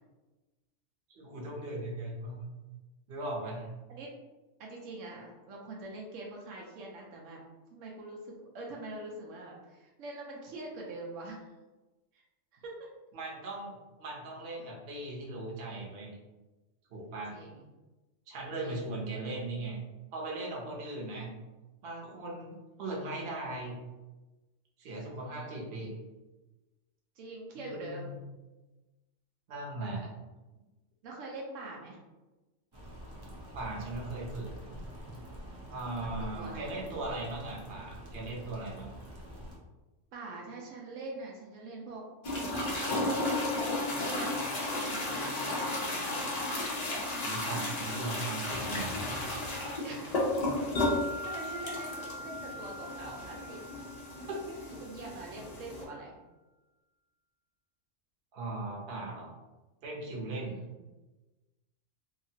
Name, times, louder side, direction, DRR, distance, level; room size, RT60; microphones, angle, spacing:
voice 1, 1.1-2.4 3.1-3.7 13.1-16.1 16.9-17.4 18.3-19.8 20.1-21.3 21.8-23.8 24.8-25.9 27.6-28.2 29.5-30.1 33.5-34.5 35.7-38.9 47.2-49.0 54.3-54.6 58.3-59.3 59.8-60.5, right 2 dB, 55° right, -3 dB, 0.9 m, -38 dB
voice 2, 4.6-7.4 7.7-11.5 12.1-12.2 12.5-12.9 17.3-17.7 18.6-18.8 25.2-25.6 27.2-28.1 30.5-30.6 31.0-32.0 35.8-36.8 40.1-43.3 43.9-44.3 44.9-45.4 45.7-46.3 49.8-50.3 51.2-53.6 54.8-56.1 60.4-60.9, right 2 dB, 80° right, -2 dB, 1.0 m, -44 dB
sound 1, 32.7-39.6, equal, 35° right, 0.4 m, -46 dB
sound 2, 42.2-55.8, left 2 dB, 50° left, 0.5 m, -34 dB
Wind chime, 50.8-55.0, equal, 65° left, 0.8 m, -42 dB
2.8 x 2.4 x 2.7 m, 1.1 s
omnidirectional pair, 1.3 m